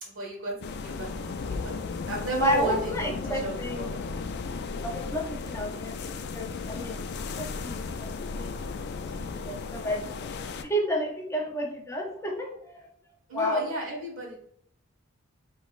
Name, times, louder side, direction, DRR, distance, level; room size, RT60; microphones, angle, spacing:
voice 1, 0.0-1.7 2.0-3.9 13.3-14.4, right 1 dB, 75° right, -1 dB, 1.5 m, -34 dB
sound 1, 0.6-10.6, left 4 dB, 55° left, 0.3 m, -35 dB
voice 2, 2.4-3.9 4.8-7.0 7.3-7.9 8.4-8.7 9.2-10.1 10.6-12.7 13.3-13.7, equal, 15° left, 1 dB, 0.6 m, -31 dB
5.2 x 3.1 x 2.4 m, 0.67 s
head